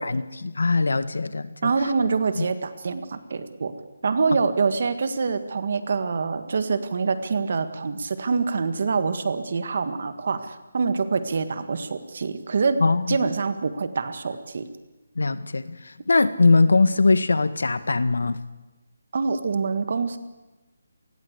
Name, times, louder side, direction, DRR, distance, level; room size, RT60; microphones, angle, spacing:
voice 1, 0.0-1.7 2.4-2.5 12.8-13.2 15.2-18.4, left 3 dB, 85° left, 13 dB, 1.8 m, -21 dB
voice 2, 1.6-3.7 4.0-12.8 13.1-14.7 19.1-20.2, right 4 dB, 35° right, 11 dB, 1.7 m, -25 dB
27.5 x 20.5 x 8.2 m, 1.1 s
hypercardioid pair, 180°, 0 cm